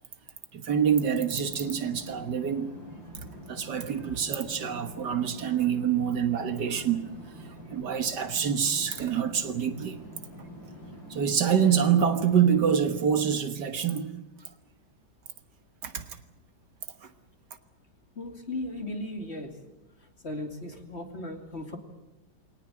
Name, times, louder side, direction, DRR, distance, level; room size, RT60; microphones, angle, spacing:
voice 1, 0.5-2.8 3.5-7.1 7.7-10.0 11.1-14.1 15.8-16.1, right 8 dB, 65° right, 1.9 m, -26 dB
sound 1, 0.8-12.8, equal, 55° left, 8.8 m, -45 dB
voice 2, 18.2-19.5 20.2-21.8, left 1 dB, 35° left, 2.9 m, -36 dB
22.5 x 18.5 x 9.0 m
omnidirectional pair, 2.0 m